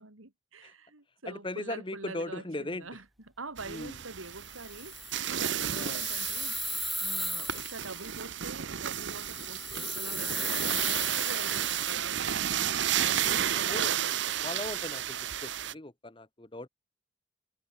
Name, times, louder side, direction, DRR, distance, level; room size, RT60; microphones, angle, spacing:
voice 1, 0.0-3.0 3.4-6.6 7.0-12.3 12.9-14.1, right 3 dB, 85° right, 3.0 m, -45 dB
voice 2, 1.3-2.9 3.6-4.0 5.7-6.0 13.3-14.0 14.4-16.7, left 2 dB, 25° left, 1.0 m, -38 dB
sound 1, 3.6-15.7, right 10 dB, 60° right, 0.7 m, -32 dB
sound 2, 4.3-8.3 8.9-12.0, equal, ahead, 0.8 m, -37 dB
head